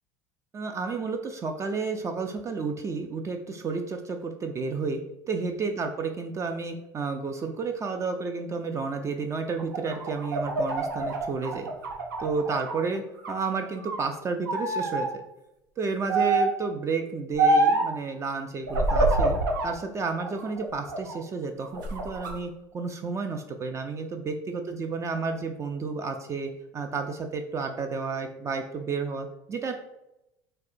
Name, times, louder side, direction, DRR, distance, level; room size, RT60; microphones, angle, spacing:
voice 1, 0.5-5.0 5.3-11.7 12.2-15.2 15.8-19.4 19.6-29.7, right 4 dB, 30° right, 5 dB, 0.3 m, -31 dB
sound 1, 9.6-12.8 13.2-14.1 14.5-15.1 16.1-16.6 17.4-17.9 18.7-19.7 20.2-21.2 21.6-22.3, right 2 dB, 85° right, 0.6 m, -26 dB
4.2 x 2.1 x 2.6 m, 0.88 s
hypercardioid pair, 75°, 10 cm